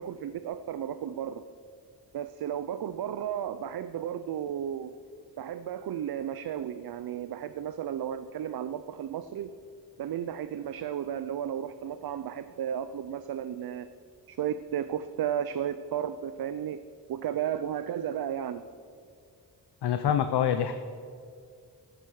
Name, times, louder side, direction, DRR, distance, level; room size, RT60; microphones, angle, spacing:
voice 1, 0.0-1.4 2.1-5.0 5.4-9.5 10.0-13.9 14.3-16.8 17.1-18.7, right 9 dB, 65° right, 12 dB, 0.5 m, -33 dB
voice 2, 19.8-20.7, left 9 dB, 75° left, 9 dB, 0.7 m, -25 dB
14.0 x 7.8 x 6.4 m, 2.2 s
wide cardioid pair, 140°, 40 cm